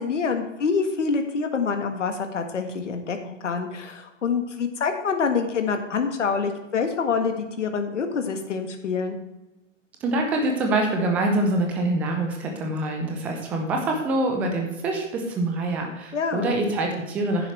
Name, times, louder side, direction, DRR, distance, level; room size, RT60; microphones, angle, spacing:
voice 1, 0.0-9.2 16.1-16.6, left 5 dB, 65° left, 5 dB, 1.7 m, -26 dB
voice 2, 10.0-17.5, right 2 dB, 5° right, 3 dB, 0.4 m, -25 dB
11.0 x 9.5 x 3.3 m, 1.0 s
figure-of-eight pair, 120°, 39 cm